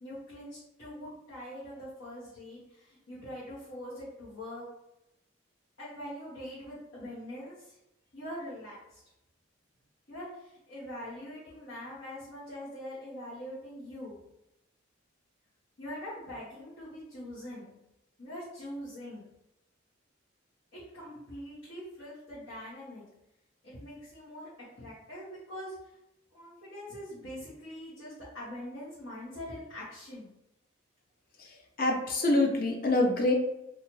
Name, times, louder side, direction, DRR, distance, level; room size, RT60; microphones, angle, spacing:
voice 1, 0.0-4.7 5.8-7.7 8.1-9.0 10.1-14.2 15.8-17.8 18.2-19.2 20.7-23.0 23.6-25.7 26.3-30.3, equal, 85° left, -10 dB, 1.1 m, -43 dB
voice 2, 31.8-33.3, left 2 dB, 45° left, 2 dB, 0.5 m, -25 dB
2.7 x 2.4 x 3.0 m, 0.86 s
head